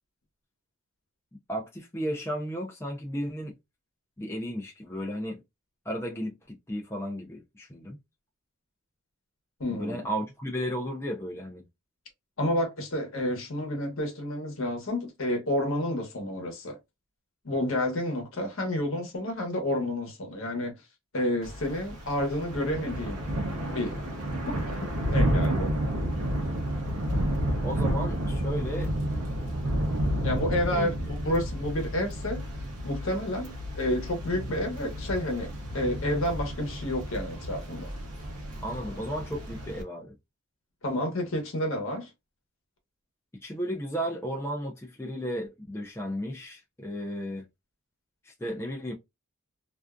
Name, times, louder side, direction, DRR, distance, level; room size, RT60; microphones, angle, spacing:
voice 1, 1.5-3.5 4.2-5.4 5.9-8.0 9.7-11.6 27.6-28.9 30.7-30.9 38.6-40.1 43.4-47.5 48.2-48.9, equal, 10° left, 0.4 m, -34 dB
voice 2, 9.6-10.1 12.4-16.8 17.4-20.8 21.1-23.2 23.7-23.9 24.5-24.8 25.1-25.7 30.2-32.4 32.8-37.9 40.8-42.1, left 1 dB, 65° left, 0.9 m, -30 dB
Thunder / Rain, 21.4-39.8, equal, 85° right, 0.6 m, -31 dB
2.5 x 2.3 x 2.2 m
head